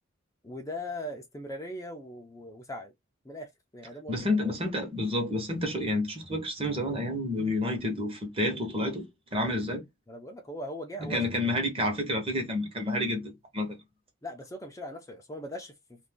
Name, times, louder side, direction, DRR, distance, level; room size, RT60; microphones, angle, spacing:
voice 1, 0.4-2.9 3.2-4.2 4.4-4.6 9.4-9.6 10.1-11.2 14.2-16.0, left 1 dB, 15° left, 0.5 m, -40 dB
voice 2, 4.1-9.8 11.0-13.8, left 1 dB, 30° right, 1.0 m, -29 dB
2.5 x 2.5 x 3.5 m
head